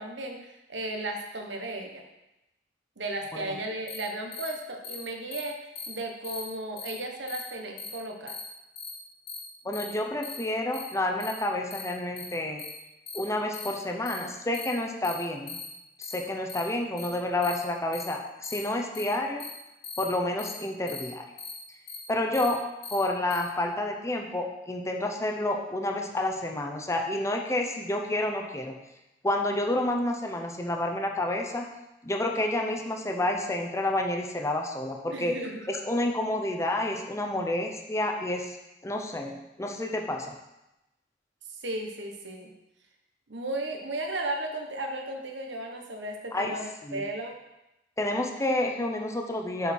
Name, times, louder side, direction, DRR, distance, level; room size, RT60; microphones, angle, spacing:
voice 1, 0.0-2.0 3.0-8.4 35.1-35.6 41.5-42.5 43.3-47.4, right 1 dB, 75° right, 3 dB, 1.2 m, -35 dB
sound 1, 3.9-4.0 4.3-4.5 4.8-5.0 5.3-5.4 5.7-5.9 6.2-6.4 6.8-6.9 7.3-7.4 7.8-7.9 8.3-8.4 8.8-8.9 9.3-9.4 9.7-9.8 10.2-10.4 10.7-10.8 11.2-11.3 11.7-11.8 12.2-12.3 12.6-12.7 13.1-13.2 13.5-13.7 14.1-14.2 14.5-14.7 15.0-15.1 15.5-15.6 16.0-16.1 16.5-16.6 17.0-17.1 17.4-17.6 17.9-18.0 18.4-18.6 18.9-19.0 19.4-19.5 19.8-20.0 20.4-20.5 20.9-21.0 21.4-21.5 21.9-22.0 22.3-22.5 22.8-22.9 23.3-23.4, left 5 dB, 65° left, 2.0 m, -39 dB
voice 2, 9.6-12.6 13.1-15.6 16.0-19.4 20.0-21.2 22.1-22.6 22.9-28.7 29.2-31.7 32.0-35.3 35.7-38.6 38.8-40.3 46.3-46.6 46.8-47.0 48.0-49.7, left 1 dB, 15° left, 2 dB, 0.8 m, -29 dB
7.0 x 6.6 x 4.4 m, 0.94 s
head